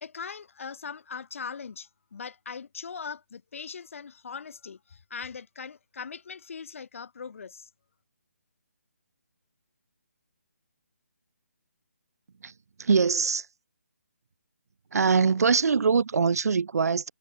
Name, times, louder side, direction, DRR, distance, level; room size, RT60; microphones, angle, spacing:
voice 1, 0.0-7.7, left 6 dB, 60° left, 0.4 m, -40 dB
voice 2, 12.8-13.5 14.9-17.1, right 5 dB, 90° right, 0.4 m, -23 dB
hypercardioid pair, 170°, 8 cm